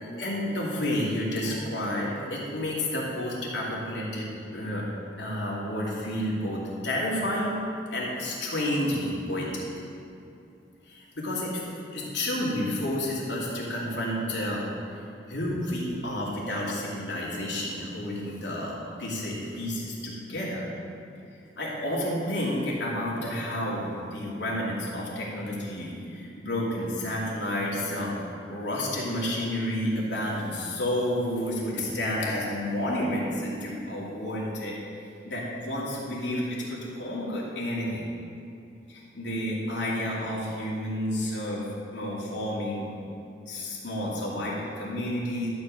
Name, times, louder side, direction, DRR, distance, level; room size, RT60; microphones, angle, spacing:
voice 1, 0.0-4.8 5.2-7.5 7.9-9.6 10.9-11.6 11.9-14.6 15.3-20.6 21.6-28.1 28.5-34.7 35.2-38.1 38.9-41.6 41.9-42.9 43.5-45.5, left 1 dB, 85° left, -5 dB, 2.6 m, -30 dB
12.5 x 4.6 x 7.5 m, 2.6 s
head